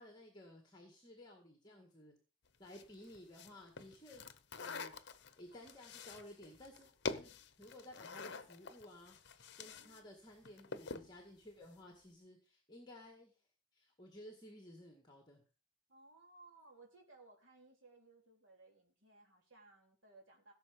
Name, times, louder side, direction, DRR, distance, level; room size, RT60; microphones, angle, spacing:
voice 1, 0.0-2.1 2.6-4.3 4.6-4.9 5.4-13.4 13.7-15.4, left 1 dB, 20° left, 2 dB, 1.9 m, -56 dB
sound 1, 2.7-10.0 10.3-11.1, left 4 dB, 50° left, 0.9 m, -47 dB
voice 2, 9.6-10.2 15.9-20.5, right 3 dB, 60° right, 1 dB, 3.9 m, -62 dB
16.5 x 6.9 x 5.2 m, 0.36 s
head